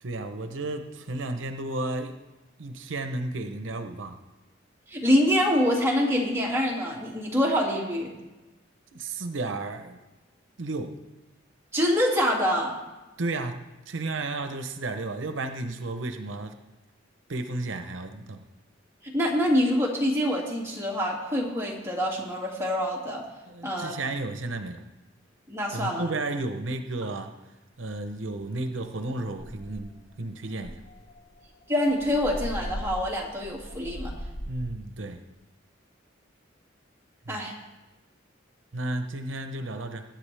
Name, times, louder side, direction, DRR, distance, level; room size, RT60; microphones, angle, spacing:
voice 1, 0.0-2.2 2.6-4.2 8.9-10.0 10.6-11.0 13.2-13.6 13.9-16.5 17.3-18.4 23.5-24.8 25.7-27.3 27.8-30.8 34.5-35.2 37.3-37.4 38.7-40.0, right 2 dB, 80° right, 7 dB, 0.8 m, -33 dB
voice 2, 4.9-8.1 11.7-12.7 19.0-23.2 23.6-23.9 25.5-26.1 31.7-34.1 37.3-37.5, equal, 15° right, -3 dB, 2.4 m, -25 dB
sound 1, 28.4-28.6 29.0-29.1 29.4-30.0 30.6-34.8, equal, 60° left, 1.3 m, -38 dB
21.0 x 9.0 x 3.4 m, 1.1 s
head